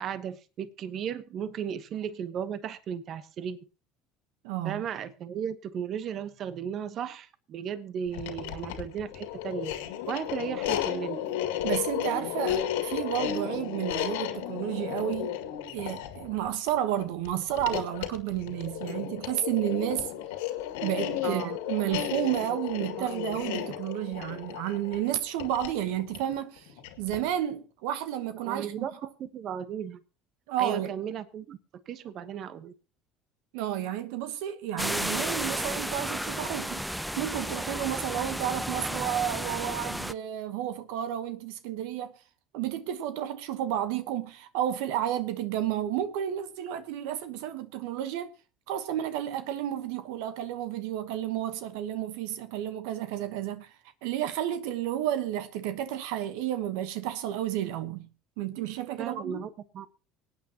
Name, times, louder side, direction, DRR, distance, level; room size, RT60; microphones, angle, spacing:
voice 1, 0.0-3.7 4.6-9.7 10.1-11.2 21.2-21.6 22.5-22.6 23.0-23.4 28.4-28.9 29.2-30.0 30.6-31.6 31.9-32.7 59.0-59.9, right 8 dB, 55° right, 1.1 m, -35 dB
voice 2, 4.4-4.8 11.6-15.4 15.7-20.1 20.8-28.9 30.5-30.9 33.5-36.8 37.2-42.1 42.5-48.3 48.7-58.1 58.4-59.5, right 11 dB, 75° right, 1.1 m, -31 dB
sound 1, 8.1-27.3, left 10 dB, 85° left, 2.2 m, -34 dB
sound 2, 34.8-40.1, equal, ahead, 0.6 m, -33 dB
24.5 x 9.1 x 2.9 m
hypercardioid pair, 80°, 0 cm